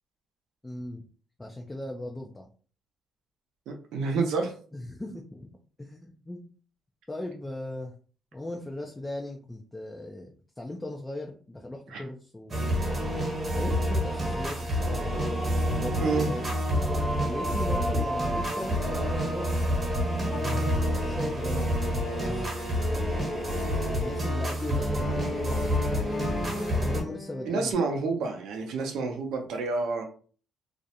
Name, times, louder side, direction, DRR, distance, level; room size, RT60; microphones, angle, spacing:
voice 1, 0.6-1.0 1.4-2.5 4.7-6.4 7.1-7.9 8.3-12.7 13.5-15.1 15.8-16.4 17.2-19.5 20.3-22.5 23.7-25.8 26.7-27.8, left 1 dB, 15° left, 1 dB, 0.4 m, -38 dB
voice 2, 3.7-4.5 11.9-12.0 16.0-16.3 27.5-30.0, right 4 dB, 80° right, 3 dB, 0.5 m, -28 dB
sound 1, 12.5-27.0, equal, 35° right, 1.1 m, -28 dB
sound 2, 20.3-27.7, left 4 dB, 80° left, 0.6 m, -40 dB
2.4 x 2.1 x 2.7 m, 0.41 s
cardioid pair, 90°, 0 cm